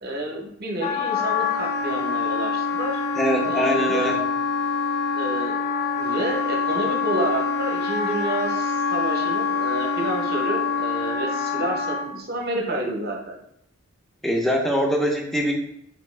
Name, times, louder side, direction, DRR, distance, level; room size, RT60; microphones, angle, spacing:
voice 1, 0.0-3.0 3.4-4.2 5.1-5.6 6.0-13.3, right 1 dB, 45° right, 0 dB, 0.8 m, -29 dB
Wind instrument woodwind instrument, 0.8-12.1, left 5 dB, 45° left, 0.5 m, -25 dB
voice 2, 3.2-4.1 14.2-15.5, equal, ahead, 0 dB, 0.6 m, -22 dB
4.3 x 2.9 x 3.2 m, 0.75 s
head